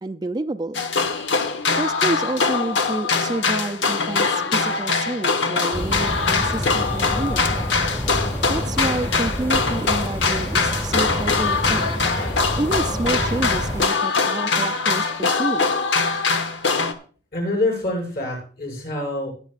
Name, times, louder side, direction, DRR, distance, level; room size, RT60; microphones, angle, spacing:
voice 1, 0.0-0.8 1.7-7.5 8.5-11.9 12.6-15.7, right 2 dB, 25° right, 7 dB, 0.4 m, -28 dB
sound 1, 0.7-16.9, left 4 dB, 85° left, 1.0 m, -22 dB
sound 2, 5.7-13.9, equal, 15° left, 1.2 m, -28 dB
voice 2, 17.3-19.3, left 2 dB, 55° left, 0 dB, 6.9 m, -25 dB
19.5 x 8.2 x 2.5 m, 0.39 s
head